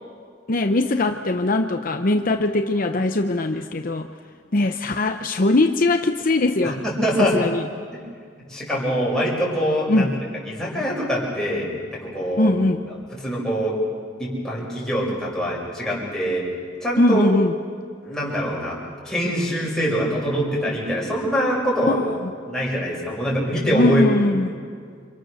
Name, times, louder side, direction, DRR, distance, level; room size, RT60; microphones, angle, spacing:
voice 1, 0.5-4.1 4.5-6.8 7.2-7.6 9.9-10.1 12.4-12.9 17.0-17.5 21.8-22.3 23.7-24.5, left 2 dB, 50° left, 6 dB, 0.8 m, -21 dB
voice 2, 6.6-7.4 7.9-8.0 8.5-10.1 10.4-12.5 13.2-13.8 14.2-16.5 16.8-17.2 18.0-18.8 19.0-22.0 22.4-24.0, equal, 5° left, -5 dB, 6.2 m, -24 dB
29.5 x 26.0 x 6.6 m, 2.1 s
head